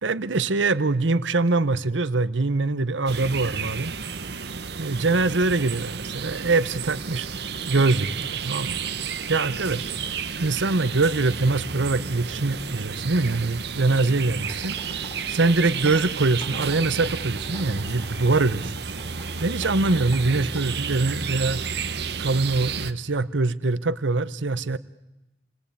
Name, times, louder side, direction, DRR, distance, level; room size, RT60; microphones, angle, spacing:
voice 1, 0.0-3.9 4.8-7.3 7.7-8.8 9.3-9.9 10.4-14.8 15.3-18.7 19.4-21.6 22.2-24.8, right 3 dB, 85° right, 16 dB, 1.0 m, -23 dB
sound 1, 3.1-22.9, right 6 dB, 60° right, 1.1 m, -32 dB
sound 2, 14.4-20.8, equal, 20° left, 3.0 m, -44 dB
29.0 x 21.0 x 8.6 m, 0.96 s
head